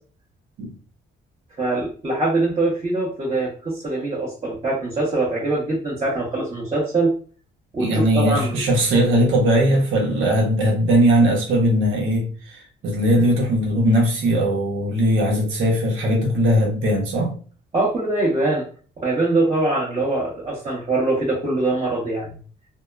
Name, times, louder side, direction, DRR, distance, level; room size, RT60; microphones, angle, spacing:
voice 1, 1.6-7.1 7.7-8.6 17.7-18.6 19.0-22.3, right 2 dB, 30° right, -6 dB, 1.0 m, -23 dB
voice 2, 7.8-17.3, equal, 80° right, -1 dB, 0.9 m, -19 dB
2.7 x 2.1 x 2.3 m, 0.41 s
cardioid pair, 90°, 20 cm